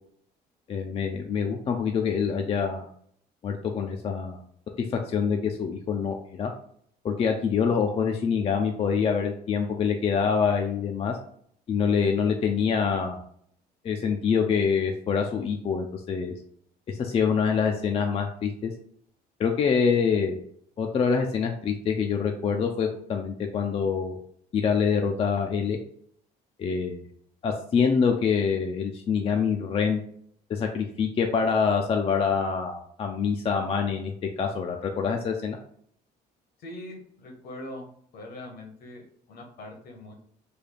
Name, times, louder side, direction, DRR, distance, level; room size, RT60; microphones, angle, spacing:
voice 1, 0.7-2.9 3.4-4.4 4.8-6.5 7.0-11.2 11.7-13.2 13.8-16.3 16.9-18.7 19.4-20.4 20.8-24.2 24.5-25.8 26.6-27.0 27.4-30.0 30.5-34.1 34.4-35.6, left 6 dB, 35° left, 3 dB, 0.4 m, -25 dB
voice 2, 36.6-37.9 38.1-40.1, left 1 dB, 65° left, 2 dB, 1.1 m, -42 dB
3.3 x 2.2 x 3.9 m, 0.63 s
cardioid pair, 110°, 17 cm